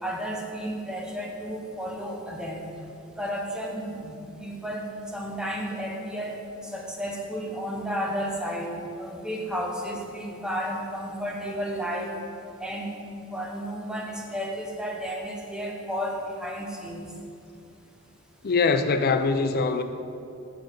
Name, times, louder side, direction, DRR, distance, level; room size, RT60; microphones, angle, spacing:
voice 1, 0.0-2.7 3.2-6.4 6.6-8.7 9.0-12.1 12.6-12.9 13.3-17.1, equal, 5° right, 0 dB, 1.0 m, -32 dB
voice 2, 18.4-19.8, left 4 dB, 45° left, 9 dB, 0.5 m, -23 dB
7.1 x 6.4 x 6.4 m, 2.6 s
head